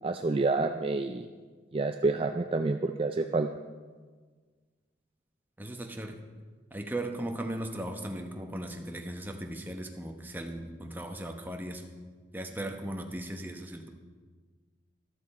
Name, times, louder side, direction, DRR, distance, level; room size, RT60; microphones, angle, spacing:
voice 1, 0.0-1.3 1.7-3.5, right 3 dB, 30° right, 7 dB, 0.4 m, -28 dB
voice 2, 5.6-6.2 6.7-11.9 12.3-13.9, right 1 dB, 10° right, 3 dB, 1.0 m, -37 dB
13.5 x 12.5 x 4.3 m, 1.5 s
head